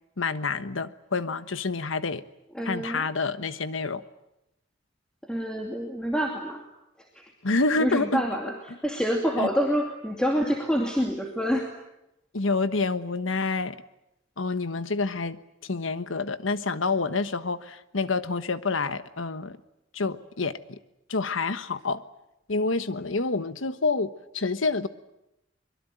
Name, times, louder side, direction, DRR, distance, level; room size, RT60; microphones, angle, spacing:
voice 1, 0.2-2.2 2.6-4.0 7.4-8.2 9.4-9.5 12.3-13.8 14.4-19.6 19.9-20.8 21.1-22.0 22.5-24.9, left 3 dB, 80° left, 12 dB, 1.3 m, -28 dB
voice 2, 2.5-3.1 5.3-6.6 7.1-7.3 7.8-11.7, equal, 5° left, 0 dB, 2.6 m, -27 dB
24.0 x 22.5 x 9.2 m, 0.89 s
head